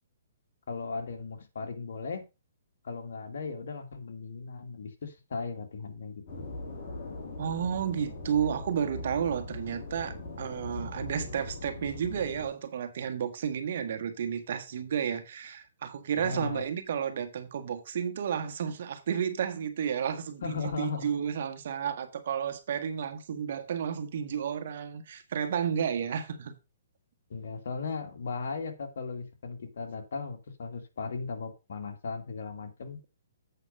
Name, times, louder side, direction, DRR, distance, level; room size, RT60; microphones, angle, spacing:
voice 1, 0.7-2.2 2.8-6.5 16.2-16.6 20.4-21.1 27.3-33.0, left 4 dB, 70° left, 2.1 m, -37 dB
sound 1, 6.3-12.5, left 2 dB, 40° left, 3.7 m, -40 dB
voice 2, 7.4-26.5, right 8 dB, 55° right, 1.7 m, -32 dB
8.2 x 5.3 x 5.4 m
hypercardioid pair, 155°, 0 cm